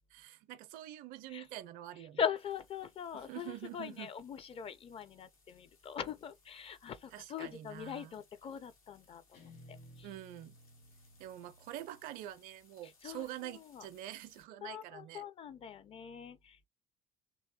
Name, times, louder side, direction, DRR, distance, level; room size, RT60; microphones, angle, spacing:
voice 1, 0.1-2.2 3.1-4.1 7.1-8.1 10.0-10.6 11.2-15.2, right 13 dB, 50° right, 0.5 m, -46 dB
voice 2, 2.2-10.1 12.8-13.9 14.6-16.7, left 7 dB, 35° left, 0.5 m, -41 dB
sound 1, 2.3-14.4, left 4 dB, 80° left, 1.1 m, -69 dB
Guitar, 9.3-12.5, equal, 60° left, 1.5 m, -58 dB
3.1 x 2.7 x 2.8 m
figure-of-eight pair, 55°, 18 cm